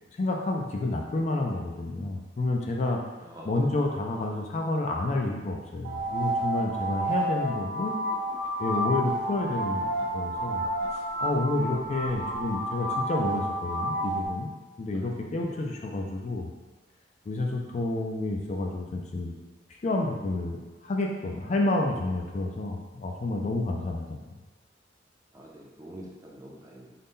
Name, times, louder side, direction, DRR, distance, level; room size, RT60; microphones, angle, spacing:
voice 1, 0.2-3.0 3.4-8.0 8.6-14.5 14.8-16.5 17.3-19.3 19.8-24.1, left 2 dB, 40° left, 1 dB, 0.3 m, -29 dB
sound 1, 5.8-14.3, right 1 dB, 90° right, 0.8 m, -30 dB
voice 2, 14.9-15.6 25.3-26.9, right 1 dB, 20° right, -3 dB, 0.5 m, -46 dB
3.9 x 2.1 x 3.6 m, 1.2 s
head